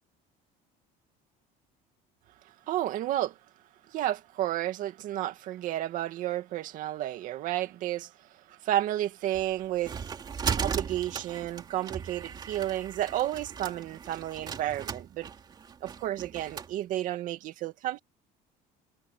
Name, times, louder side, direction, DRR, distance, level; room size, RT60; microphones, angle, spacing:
voice 1, 2.4-3.4 3.9-10.0 10.6-15.3 15.8-18.0, right 13 dB, 50° right, 2.1 m, -32 dB
sound 1, 9.3-16.7, right 6 dB, 25° right, 3.2 m, -37 dB
cardioid pair, 175°, 18 cm